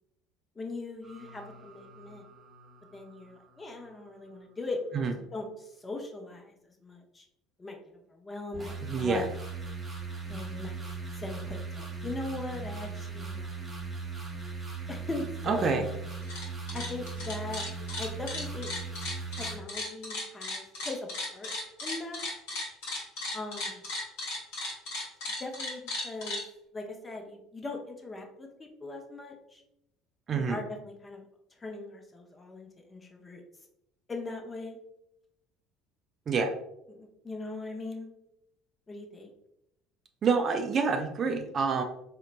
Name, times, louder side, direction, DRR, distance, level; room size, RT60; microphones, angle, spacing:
voice 1, 0.6-2.2 2.9-4.8 5.1-7.3 7.6-7.8 8.1-9.2 10.3-10.9 11.2-13.5 14.9-15.9 16.7-17.7 18.0-18.7 19.4-21.5 21.8-22.2 23.3-23.9 25.4-26.4 26.7-29.6 30.3-31.2 31.6-33.4 34.1-34.8 36.9-38.1 38.9-39.3, left 2 dB, 25° left, 2 dB, 0.6 m, -40 dB
sound 1, 1.0-3.9 8.5-19.6, right 4 dB, 15° right, 0.8 m, -39 dB
voice 2, 8.9-9.2 15.5-15.9 30.3-30.6 36.3-36.5 40.2-41.8, right 5 dB, 40° right, 6 dB, 0.3 m, -27 dB
sound 2, 16.1-16.4 16.7-26.4, left 2 dB, 65° left, 1.0 m, -36 dB
3.8 x 2.1 x 2.4 m, 0.82 s
hypercardioid pair, 60°, 0 cm